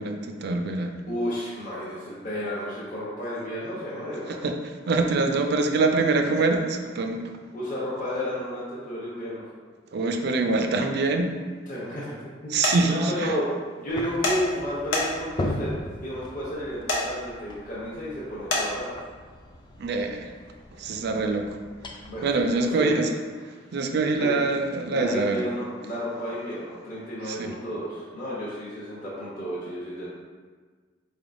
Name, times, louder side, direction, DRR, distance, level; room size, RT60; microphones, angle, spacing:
voice 1, 0.0-1.0 4.3-7.2 9.9-11.3 12.5-13.4 19.8-20.3 20.7-21.6 22.2-23.1 23.4-25.4 27.2-27.6, right 3 dB, 60° right, 5 dB, 0.4 m, -25 dB
voice 2, 1.1-4.4 7.5-9.4 11.7-12.2 12.4-12.5 12.8-13.5 13.8-15.7 16.0-18.9 22.1-22.3 22.6-23.0 23.5-23.6 24.2-24.3 24.9-30.0, equal, 45° left, -8 dB, 0.8 m, -32 dB
sound 1, 12.6-12.8 14.2-14.4 14.9-15.3 16.9-17.0 18.5-18.6, left 2 dB, 80° left, 0.7 m, -24 dB
sound 2, 13.9-22.6, left 1 dB, 25° left, 0.3 m, -38 dB
4.1 x 3.4 x 2.5 m, 1.5 s
head